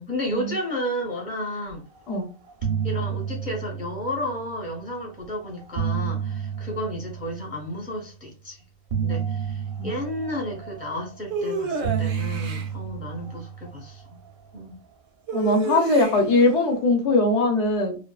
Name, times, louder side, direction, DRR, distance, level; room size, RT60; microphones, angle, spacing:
voice 1, 0.0-1.8 2.8-8.6 9.0-14.2 14.5-14.8, equal, 10° right, 0.5 m, -32 dB
sound 1, 2.0-2.2 2.4-4.8 5.5-7.9 8.9-11.3 11.8-14.4, right 7 dB, 65° right, 0.6 m, -31 dB
sound 2, 11.3-12.7 15.3-16.4, right 4 dB, 80° right, 0.9 m, -29 dB
voice 2, 15.3-18.0, left 2 dB, 70° left, 0.8 m, -21 dB
2.5 x 2.3 x 2.3 m
omnidirectional pair, 1.3 m